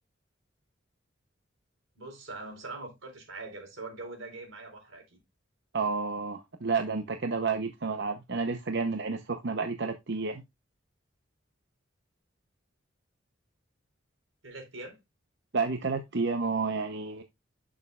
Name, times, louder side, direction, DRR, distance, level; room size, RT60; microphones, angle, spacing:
voice 1, 1.9-5.2 14.4-15.0, right 3 dB, 85° right, 4.0 m, -42 dB
voice 2, 5.7-10.4 15.5-17.2, right 4 dB, 60° right, 0.8 m, -30 dB
11.0 x 6.4 x 2.4 m
head